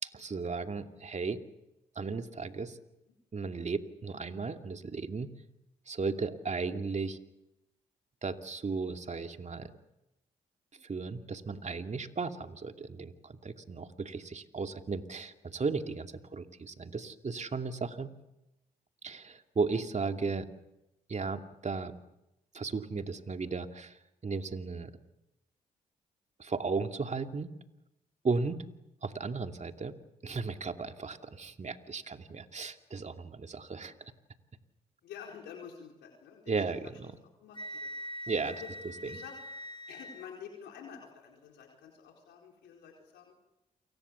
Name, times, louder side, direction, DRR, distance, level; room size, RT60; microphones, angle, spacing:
voice 1, 0.0-1.4 2.0-2.8 3.3-5.3 5.9-7.2 8.2-9.7 10.8-18.1 19.0-20.5 21.1-21.9 22.5-24.0 24.2-24.9 26.4-27.5 28.2-28.6 29.0-30.0 30.2-34.1 36.5-37.1 38.3-38.5, right 4 dB, 40° right, 6 dB, 2.6 m, -35 dB
voice 2, 19.9-20.2 33.9-34.0 35.0-36.9 37.2-37.9 38.5-38.7 39.0-39.4 39.9-43.3, left 7 dB, 80° left, 1 dB, 4.6 m, -49 dB
Wind instrument woodwind instrument, 37.5-40.3, equal, 25° left, 2.0 m, -43 dB
29.0 x 24.0 x 7.1 m, 0.89 s
supercardioid pair, 50°, 17 cm